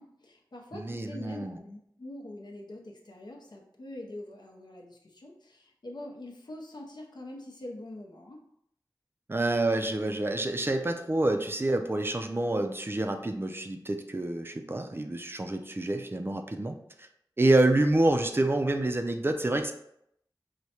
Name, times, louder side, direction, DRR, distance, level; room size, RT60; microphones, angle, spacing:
voice 1, 0.0-8.4, left 1 dB, 65° left, 1 dB, 0.7 m, -44 dB
voice 2, 0.7-1.6 9.3-17.1 17.4-19.7, right 2 dB, 30° right, 6 dB, 0.4 m, -27 dB
4.7 x 2.1 x 2.8 m, 0.73 s
wide cardioid pair, 50°, 8 cm